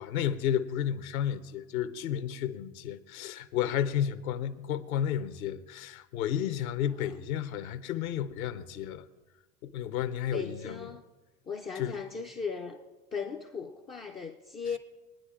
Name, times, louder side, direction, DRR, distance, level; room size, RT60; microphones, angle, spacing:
voice 1, 0.0-9.0 9.6-10.9 11.8-12.0, left 10 dB, 70° left, 0.9 m, -32 dB
voice 2, 10.3-11.0 11.5-12.8 13.1-14.8, left 5 dB, 15° left, 0.3 m, -37 dB
23.5 x 9.5 x 2.5 m
hypercardioid pair, 90°, 44 cm